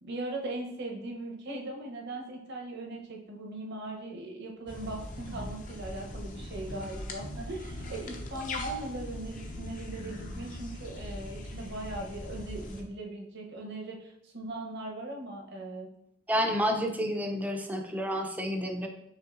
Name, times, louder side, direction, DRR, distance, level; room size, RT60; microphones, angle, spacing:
voice 1, 0.0-15.9, right 2 dB, 60° right, 1 dB, 0.8 m, -39 dB
sound 1, 4.7-12.8, left 1 dB, 40° left, 0.6 m, -40 dB
sound 2, 5.1-5.6 6.0-6.1 6.7-6.9 7.2-8.0 8.7-8.8 9.3-10.6, equal, 85° right, 1.1 m, -45 dB
voice 2, 16.3-18.9, equal, 10° right, 4 dB, 0.5 m, -30 dB
5.5 x 3.5 x 2.5 m, 0.77 s
head